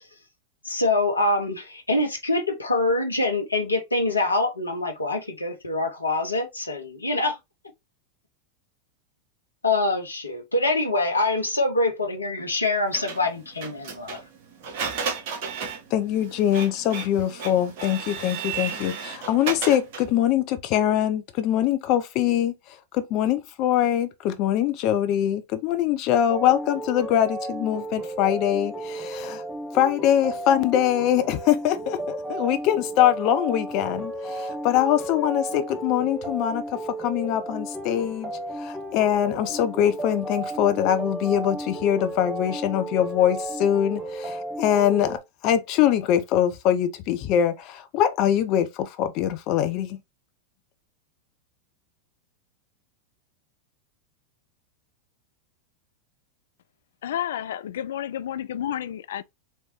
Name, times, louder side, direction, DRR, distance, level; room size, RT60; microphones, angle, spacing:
voice 1, 0.6-7.4 9.6-14.2, left 2 dB, 85° left, 1.0 m, -25 dB
Printer, 12.9-20.2, right 6 dB, 50° right, 1.4 m, -34 dB
voice 2, 15.9-22.5 22.9-29.4 29.7-38.3 38.6-50.0, left 10 dB, 45° left, 0.8 m, -23 dB
sound 1, 26.3-45.2, right 1 dB, 10° right, 1.4 m, -34 dB
voice 3, 57.0-59.2, left 10 dB, 65° left, 0.3 m, -30 dB
4.4 x 3.1 x 3.1 m
figure-of-eight pair, 90°, 0 cm